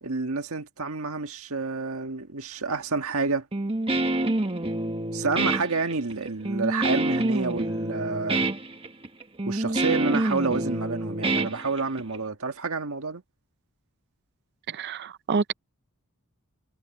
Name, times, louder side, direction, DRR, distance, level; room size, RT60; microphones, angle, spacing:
voice 1, 0.0-3.5 5.1-8.5 9.5-13.2, right 4 dB, 65° right, 1.8 m, -29 dB
Guitar, 3.5-12.2, right 2 dB, 25° right, 1.4 m, -27 dB
voice 2, 14.7-15.5, right 5 dB, 50° right, 0.5 m, -28 dB
head